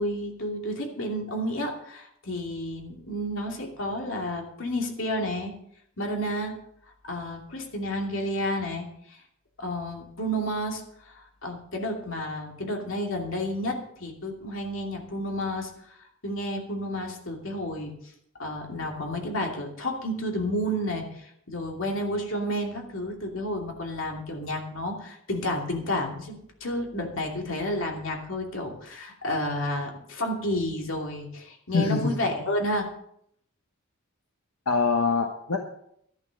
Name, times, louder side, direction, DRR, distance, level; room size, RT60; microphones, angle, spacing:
voice 1, 0.0-5.5 6.0-6.6 7.1-8.9 9.6-17.9 18.4-32.9, equal, 60° left, 1 dB, 2.7 m, -31 dB
voice 2, 31.7-32.1 34.7-35.6, left 4 dB, 85° left, 3 dB, 1.3 m, -24 dB
12.0 x 11.0 x 5.3 m, 0.70 s
head